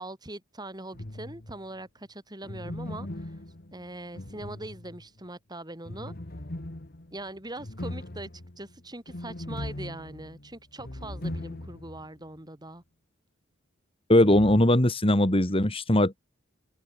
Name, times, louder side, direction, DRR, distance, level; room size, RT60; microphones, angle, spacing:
voice 1, 0.0-3.1 3.7-6.1 7.1-8.3 8.6-12.8, right 1 dB, 20° right, 6.6 m, -41 dB
sound 1, 0.9-1.7 2.4-5.2 5.9-12.1 12.4-12.5 14.2-14.6, left 1 dB, 50° left, 1.8 m, -39 dB
voice 2, 14.1-16.2, left 1 dB, 30° left, 2.7 m, -20 dB
head